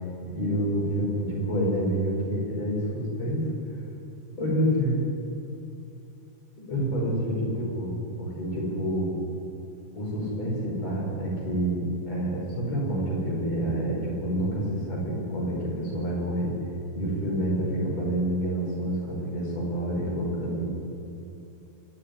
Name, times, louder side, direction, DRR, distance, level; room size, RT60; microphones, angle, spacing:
voice 1, 0.2-3.4 4.4-5.0 6.7-9.1 9.9-16.5 16.9-20.7, right 1 dB, 30° left, -3 dB, 6.4 m, -28 dB
24.0 x 11.0 x 10.0 m, 2.6 s
omnidirectional pair, 5.7 m